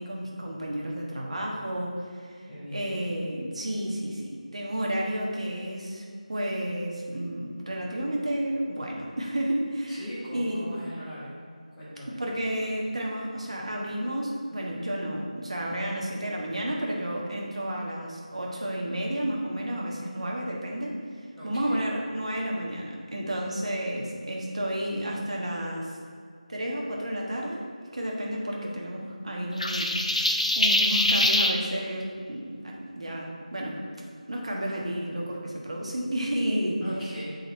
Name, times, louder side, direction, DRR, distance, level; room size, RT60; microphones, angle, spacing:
voice 1, 0.0-1.9 2.2-2.4 2.7-10.0 10.3-10.7 12.1-21.0 21.4-26.0 26.5-27.6 27.9-33.8 34.3-36.8, right 1 dB, 50° right, -2 dB, 1.3 m, -31 dB
voice 2, 2.5-2.9 9.9-11.3 11.7-12.1 21.4-21.8 36.8-37.2, equal, 5° left, -15 dB, 1.2 m, -39 dB
sound 1, 29.6-31.5, left 1 dB, 60° left, 0.7 m, -23 dB
6.7 x 4.2 x 4.5 m, 2.1 s
figure-of-eight pair, 175°, 4 cm